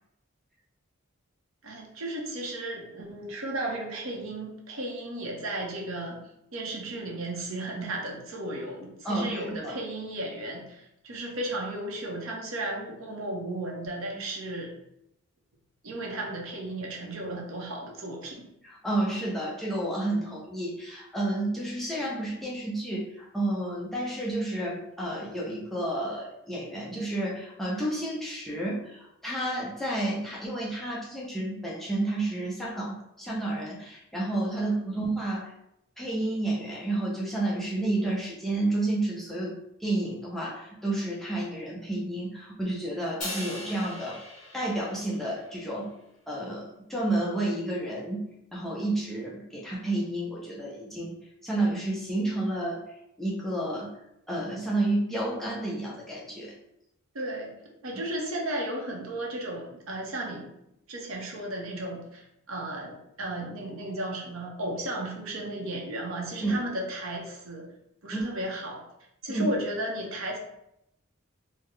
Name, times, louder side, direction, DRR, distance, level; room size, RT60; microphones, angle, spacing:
voice 1, 1.6-6.2 6.5-14.7 15.8-18.5 57.1-57.5 57.8-60.5 60.9-67.7 68.0-68.8 69.2-70.4, right 1 dB, 80° right, 0 dB, 0.8 m, -34 dB
voice 2, 9.0-9.7 18.6-35.5 36.0-44.2 44.5-45.9 46.3-51.2 51.4-52.8 53.2-53.9 54.3-56.5 66.4-66.6 68.1-68.2 69.3-69.6, right 1 dB, ahead, -6 dB, 0.6 m, -30 dB
Crash cymbal, 43.2-45.6, left 1 dB, 40° left, 1.3 m, -39 dB
3.7 x 2.1 x 3.1 m, 0.81 s
head